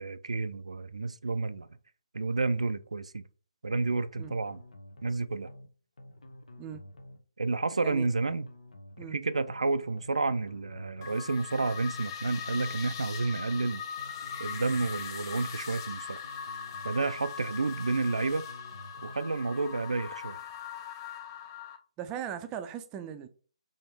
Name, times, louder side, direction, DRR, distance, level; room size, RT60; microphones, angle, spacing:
voice 1, 0.0-1.7 2.1-3.2 3.6-4.6 5.0-5.5 7.4-8.5 9.1-13.8 14.4-16.2 16.8-18.4 19.0-20.4, right 3 dB, 80° right, 0.3 m, -30 dB
sound 1, 4.2-5.2 5.5-5.7 6.0-7.2 8.2-9.2 9.5-9.7 10.0-11.2 12.2-13.2 13.5-13.7 14.0-15.2 16.2-17.2 17.5-17.7 18.0-19.2, left 1 dB, 75° left, 0.8 m, -50 dB
sound 2, 11.0-21.8, left 7 dB, 35° left, 0.6 m, -40 dB
voice 2, 22.0-23.3, right 9 dB, 20° right, 0.5 m, -38 dB
4.2 x 3.5 x 3.4 m
figure-of-eight pair, 140°, 3 cm